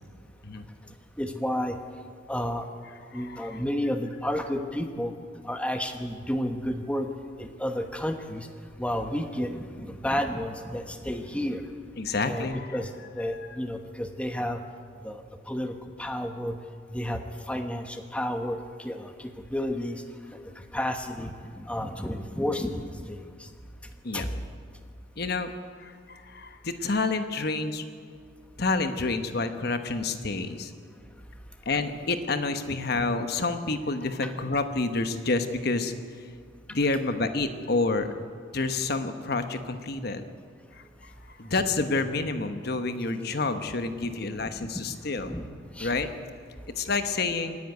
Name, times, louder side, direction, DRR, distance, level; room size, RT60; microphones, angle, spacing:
voice 1, 1.2-1.8 2.3-2.7 3.1-5.1 5.4-7.1 7.4-8.5 8.8-11.6 12.2-12.9 13.1-14.6 15.0-15.2 15.5-16.5 16.9-20.0 20.7-23.2 24.1-24.3 34.2-34.3 41.6-41.7 44.4-44.5 44.9-45.0 45.2-45.5 45.8-45.9, equal, 5° left, 5 dB, 1.1 m, -31 dB
voice 2, 3.1-3.6 12.0-12.8 24.0-24.3 25.2-25.5 25.8-27.8 28.6-30.7 31.7-35.9 36.7-38.1 38.5-40.3 40.7-45.3 45.8-46.1 46.8-47.6, left 3 dB, 55° left, 8 dB, 1.1 m, -29 dB
26.0 x 10.5 x 9.6 m, 2.1 s
head